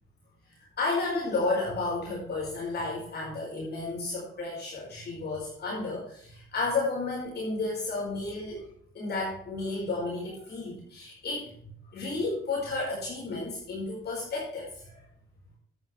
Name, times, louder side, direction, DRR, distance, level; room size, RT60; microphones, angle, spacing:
voice 1, 0.8-8.7 8.9-11.5 11.9-15.0, left 3 dB, 55° left, -3 dB, 4.8 m, -32 dB
11.5 x 9.3 x 3.3 m, 0.65 s
cardioid pair, 90°, 20 cm